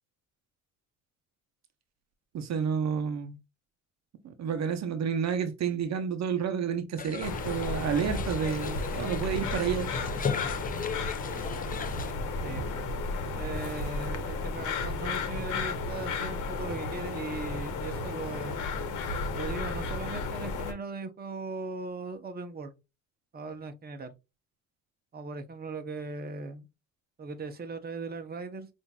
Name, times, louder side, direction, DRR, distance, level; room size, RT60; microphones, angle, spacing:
voice 1, 2.3-3.4 4.2-9.9, right 7 dB, 60° right, 0.8 m, -30 dB
sound 1, 7.0-12.1, left 6 dB, 30° left, 0.5 m, -37 dB
sound 2, 7.2-20.7, left 3 dB, 85° left, 0.9 m, -33 dB
sound 3, 7.3-7.7 8.0-10.9 11.3-11.6, right 1 dB, 10° right, 1.2 m, -46 dB
voice 2, 13.3-18.6 19.3-22.7 23.3-24.1 25.1-26.7 27.2-28.7, right 3 dB, 30° right, 0.8 m, -38 dB
5.6 x 2.6 x 2.3 m
cardioid pair, 90°, 30 cm